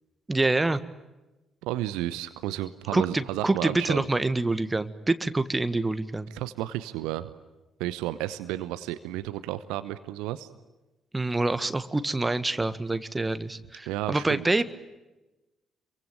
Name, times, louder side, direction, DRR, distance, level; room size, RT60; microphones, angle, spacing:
voice 1, 0.3-0.8 2.9-6.3 11.1-14.6, right 2 dB, 15° right, 12 dB, 1.6 m, -26 dB
voice 2, 1.6-4.1 6.3-7.3 7.8-10.5 13.9-14.5, right 14 dB, 65° right, 13 dB, 0.9 m, -32 dB
27.0 x 23.5 x 9.0 m, 1.1 s
figure-of-eight pair, 45°, 0 cm